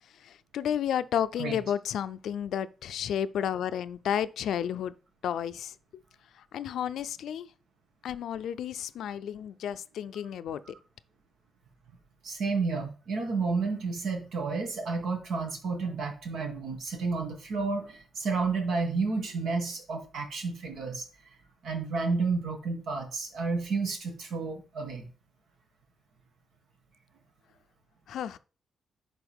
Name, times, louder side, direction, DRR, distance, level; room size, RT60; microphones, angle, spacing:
voice 1, 0.1-4.9 5.2-5.8 6.4-7.5 8.0-10.6 28.1-28.4, left 9 dB, 85° left, 0.4 m, -32 dB
voice 2, 12.2-21.0 21.6-25.1, right 4 dB, 80° right, 1.8 m, -31 dB
11.0 x 4.2 x 3.6 m
cardioid pair, 105°, 0 cm